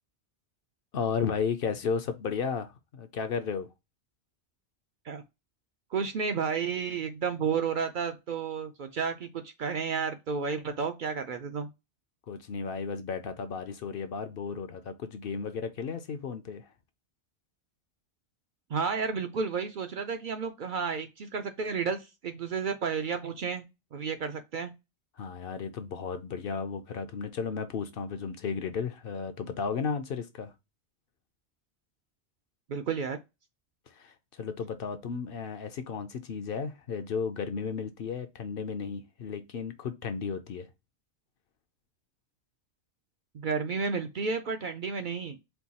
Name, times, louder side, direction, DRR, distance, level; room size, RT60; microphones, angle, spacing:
voice 1, 0.9-3.7 12.3-16.7 25.2-30.5 33.9-40.7, left 6 dB, 65° left, 0.7 m, -34 dB
voice 2, 5.9-11.7 18.7-23.7 23.9-24.7 32.7-33.2 43.3-45.4, right 5 dB, 55° right, 0.6 m, -32 dB
4.5 x 2.3 x 4.0 m
omnidirectional pair, 1.1 m